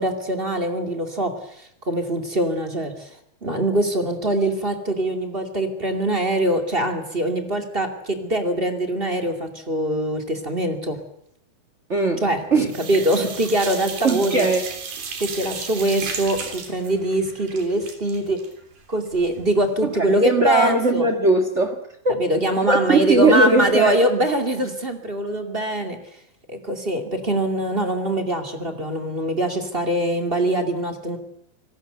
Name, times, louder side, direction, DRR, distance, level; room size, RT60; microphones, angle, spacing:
voice 1, 0.0-11.0 12.2-14.5 15.2-18.4 18.9-21.1 22.2-26.0 26.5-31.2, right 1 dB, 20° right, 5 dB, 2.0 m, -23 dB
voice 2, 11.9-12.2 12.5-12.7 14.0-14.7 19.8-22.2 22.7-24.0, right 2 dB, 55° right, 7 dB, 0.8 m, -19 dB
sound 1, 12.0-12.4 12.7-19.5 19.9-20.0 20.3-20.4, right 5 dB, 70° right, 5.1 m, -34 dB
27.0 x 18.5 x 8.0 m, 0.73 s
omnidirectional pair, 4.2 m